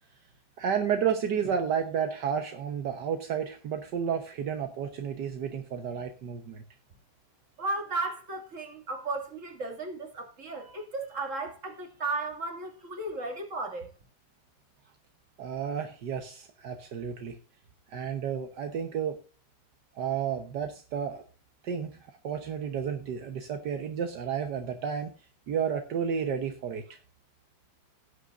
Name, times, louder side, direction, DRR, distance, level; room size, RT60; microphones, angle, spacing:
voice 1, 0.6-6.6 15.4-17.4 17.9-19.2 20.0-21.2 21.6-25.1 25.5-27.0, right 7 dB, 75° right, 1.7 m, -31 dB
voice 2, 7.6-13.9, right 3 dB, 45° right, 2.7 m, -35 dB
17.5 x 8.4 x 2.5 m
omnidirectional pair, 1.9 m